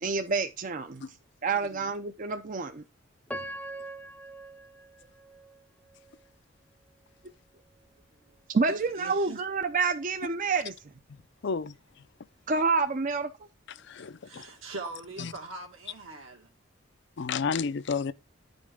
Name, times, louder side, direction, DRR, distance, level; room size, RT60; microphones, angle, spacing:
voice 1, 0.0-1.0 1.4-2.8 8.5-10.7 12.5-13.3, right 4 dB, 40° right, 0.5 m, -28 dB
voice 2, 1.5-1.9 3.5-3.9 8.1-8.4 8.7-9.4 13.8-13.9 14.2-16.5, right 2 dB, 80° right, 2.2 m, -42 dB
Piano, 3.3-6.3 6.9-7.0 7.6-7.9, right 1 dB, 5° left, 0.5 m, -42 dB
voice 3, 11.4-11.8 13.8-14.5 15.2-15.3 17.2-18.1, left 5 dB, 60° left, 0.5 m, -31 dB
9.7 x 5.3 x 3.6 m
head